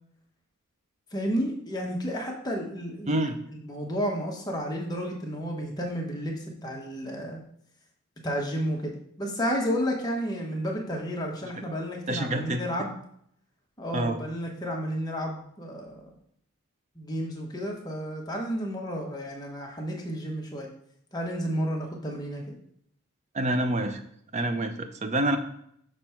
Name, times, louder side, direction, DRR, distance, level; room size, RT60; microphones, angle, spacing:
voice 1, 1.1-7.4 8.2-12.9 13.8-16.1 16.9-20.7 21.1-22.6, equal, 20° left, -1 dB, 1.1 m, -32 dB
voice 2, 3.1-3.4 12.1-12.6 13.9-14.2 23.3-24.0 24.3-25.4, right 1 dB, 30° right, 8 dB, 0.5 m, -27 dB
6.1 x 3.3 x 5.7 m, 0.68 s
head